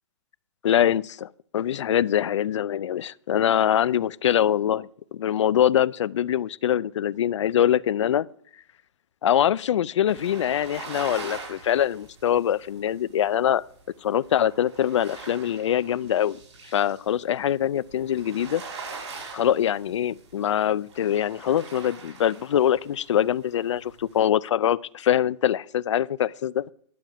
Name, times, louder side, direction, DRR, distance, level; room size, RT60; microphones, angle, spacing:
voice 1, 0.6-8.3 9.2-13.6 14.0-16.4 16.7-18.6 19.3-26.7, left 10 dB, 90° left, 0.5 m, -23 dB
sound 1, 10.1-23.2 23.6-24.2, right 4 dB, 75° right, 5.5 m, -42 dB
11.5 x 7.3 x 6.0 m
hypercardioid pair, 155°, 15 cm